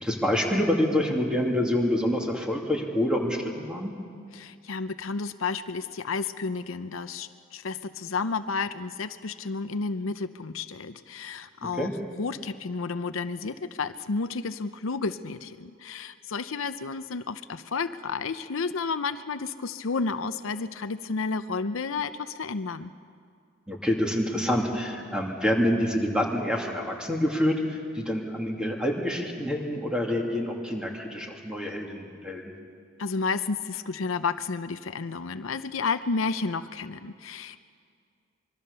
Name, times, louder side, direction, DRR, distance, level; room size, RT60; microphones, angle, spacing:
voice 1, 0.0-3.9 11.8-11.9 23.7-32.5, left 1 dB, 5° right, 0 dB, 2.6 m, -27 dB
voice 2, 4.3-11.9 12.2-22.9 33.0-37.8, left 4 dB, 75° left, 11 dB, 0.7 m, -31 dB
25.5 x 22.5 x 6.8 m, 2.2 s
head